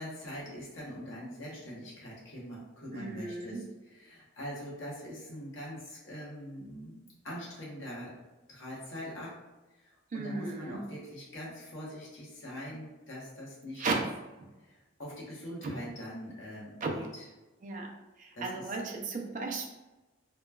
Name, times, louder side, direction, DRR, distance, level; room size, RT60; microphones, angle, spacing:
voice 1, 0.0-8.1 8.5-9.3 9.8-13.8 14.6-17.2 18.3-18.6, equal, 70° left, -5 dB, 1.0 m, -43 dB
voice 2, 2.9-3.6 10.1-10.8 13.8-14.0 15.6-15.7 16.8-16.9 17.6-17.9 18.2-19.7, right 3 dB, 40° right, 1 dB, 0.4 m, -35 dB
3.0 x 2.2 x 2.2 m, 1.1 s
head